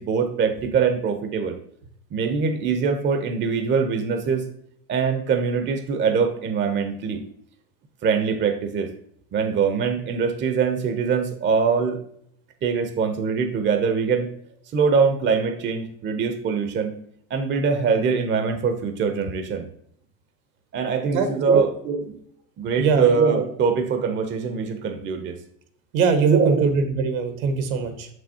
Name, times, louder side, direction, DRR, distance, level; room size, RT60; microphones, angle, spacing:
voice 1, 0.0-1.6 2.1-4.4 4.9-7.2 8.0-8.9 9.3-12.0 12.6-14.3 14.7-16.9 17.3-19.7 20.7-22.1 22.6-25.4 26.3-26.7, right 5 dB, 25° right, 7 dB, 0.8 m, -23 dB
voice 2, 22.8-23.1 25.9-28.1, right 5 dB, 75° right, 7 dB, 1.5 m, -22 dB
6.8 x 6.2 x 2.8 m, 0.67 s
hypercardioid pair, 100°, 42 cm